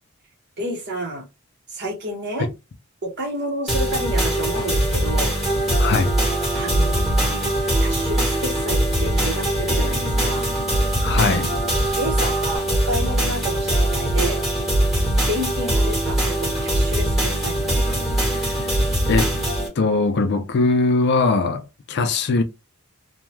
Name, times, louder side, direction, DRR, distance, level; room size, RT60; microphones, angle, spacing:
voice 1, 0.6-1.2 1.7-2.5 3.0-5.3 6.5-7.3 7.8-10.4 12.0-14.4 15.3-18.0, right 1 dB, 50° right, 0.9 m, -30 dB
sound 1, 3.7-19.7, right 1 dB, ahead, 1.0 m, -21 dB
sound 2, 3.9-12.6, right 1 dB, 20° right, 0.8 m, -35 dB
voice 2, 5.8-6.1 11.0-11.5 18.3-18.8 19.1-19.3 19.8-22.4, left 3 dB, 50° left, 0.4 m, -21 dB
2.7 x 2.2 x 3.1 m
head